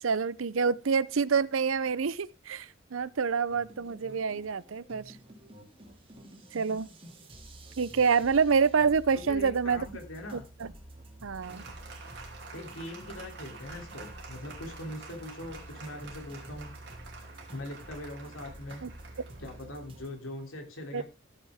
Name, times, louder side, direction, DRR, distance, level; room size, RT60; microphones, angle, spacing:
voice 1, 0.0-5.2 6.5-6.9 7.8-9.8 10.3-10.7 11.2-11.6 18.8-18.9 20.9-21.0, right 5 dB, 75° right, 0.6 m, -27 dB
sound 1, 3.5-20.1, right 1 dB, 25° right, 2.5 m, -49 dB
voice 2, 9.3-10.4 12.5-16.7 17.5-18.9 19.4-21.0, left 1 dB, 75° left, 3.1 m, -41 dB
Applause, 11.4-20.4, right 4 dB, 55° right, 2.8 m, -49 dB
15.0 x 7.5 x 3.5 m
head